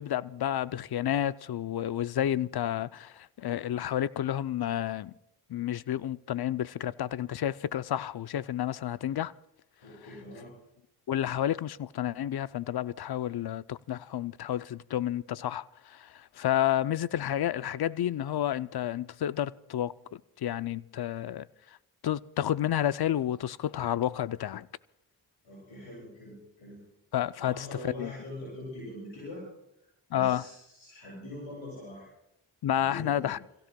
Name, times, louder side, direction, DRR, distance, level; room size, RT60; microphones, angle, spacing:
voice 1, 0.0-5.1 5.5-9.3 11.1-21.5 22.0-24.7 27.1-28.1 30.1-30.5 32.6-33.4, left 11 dB, 55° left, 0.6 m, -30 dB
voice 2, 9.8-10.5 25.4-26.8 27.4-29.4 30.1-32.1 32.7-33.3, left 1 dB, 90° left, 7.8 m, -43 dB
29.0 x 16.5 x 2.3 m
cardioid pair, 40°, 45 cm